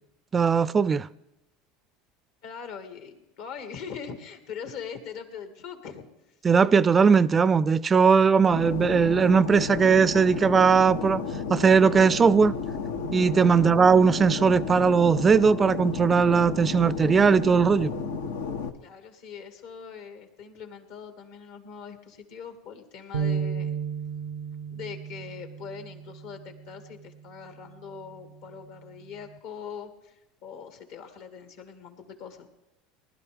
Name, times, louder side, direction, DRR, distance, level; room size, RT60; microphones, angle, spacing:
voice 1, 0.3-1.1 6.4-11.2 11.5-12.6 13.1-17.9, right 5 dB, 25° right, 0.4 m, -19 dB
voice 2, 2.4-6.4 13.4-13.7 18.8-23.7 24.7-32.5, left 6 dB, 70° left, 2.3 m, -42 dB
Fixed-wing aircraft airplane, 8.5-18.7, left 5 dB, 90° left, 1.1 m, -32 dB
sound 1, 23.1-29.4, right 6 dB, 80° right, 0.5 m, -35 dB
20.5 x 12.0 x 3.5 m
hypercardioid pair, 85°, 0 cm